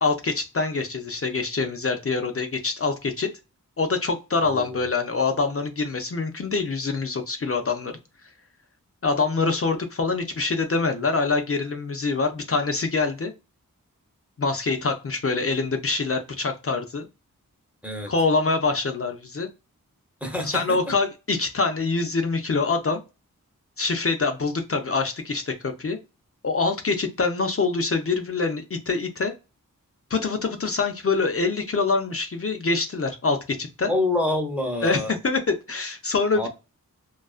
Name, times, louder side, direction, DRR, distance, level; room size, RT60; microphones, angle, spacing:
voice 1, 0.0-3.3 3.8-7.9 9.0-13.3 14.4-17.1 18.1-19.5 20.4-23.0 23.8-26.0 26.4-29.3 30.1-33.9 34.8-36.5, left 4 dB, 40° left, 0.4 m, -25 dB
voice 2, 4.5-4.9 17.8-18.1 20.2-20.9 33.9-35.1 36.3-36.5, left 2 dB, 5° right, 0.7 m, -27 dB
2.4 x 2.2 x 2.3 m
wide cardioid pair, 45°, 35 cm